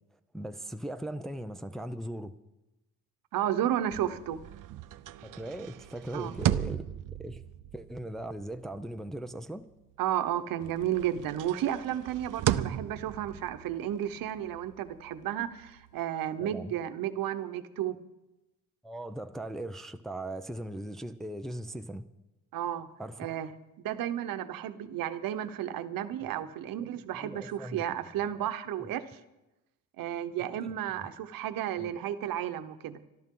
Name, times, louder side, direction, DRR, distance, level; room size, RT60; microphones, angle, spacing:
voice 1, 0.3-2.4 5.2-6.8 7.2-7.4 7.7-9.7 16.4-16.7 18.8-22.1 23.0-23.3 26.8-26.9 27.2-27.8 28.3-28.5 30.6-30.8 31.8-31.9, right 1 dB, ahead, 0.5 m, -39 dB
voice 2, 3.3-4.4 6.1-6.3 10.0-18.0 22.5-22.9 23.2-23.5 23.8-29.1 30.0-33.0, right 11 dB, 80° right, 1.0 m, -32 dB
sound 1, 3.8-10.3 10.6-16.0, right 12 dB, 65° right, 0.6 m, -36 dB
25.5 x 12.5 x 3.8 m
cardioid pair, 145°, 34 cm